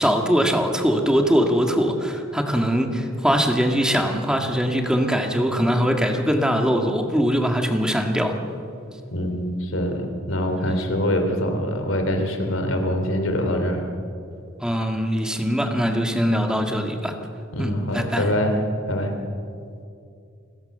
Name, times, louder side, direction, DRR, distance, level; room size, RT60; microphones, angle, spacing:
voice 1, 0.0-8.4 10.7-10.8 14.6-17.1 17.6-18.3, equal, 5° right, 3 dB, 2.0 m, -22 dB
voice 2, 9.1-13.8 17.5-18.6 18.9-19.1, equal, 90° left, 5 dB, 3.4 m, -24 dB
29.5 x 16.0 x 6.8 m, 2.4 s
head